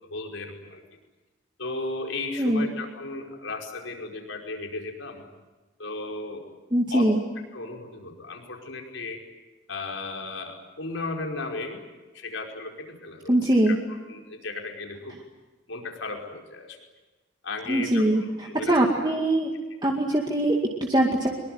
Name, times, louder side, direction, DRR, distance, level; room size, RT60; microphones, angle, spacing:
voice 1, 0.1-0.8 1.6-5.2 5.8-6.4 6.9-7.1 7.5-9.2 9.7-11.8 12.1-13.4 13.7-13.8 14.1-15.2 15.7-16.8 17.4-18.1 18.4-18.8, left 3 dB, 75° left, 2 dB, 5.2 m, -35 dB
voice 2, 2.4-2.7 6.7-7.2 13.3-13.8 17.7-18.2 18.6-19.5 19.8-21.4, right 1 dB, 20° right, 0 dB, 2.2 m, -22 dB
24.5 x 22.5 x 9.4 m, 1.2 s
head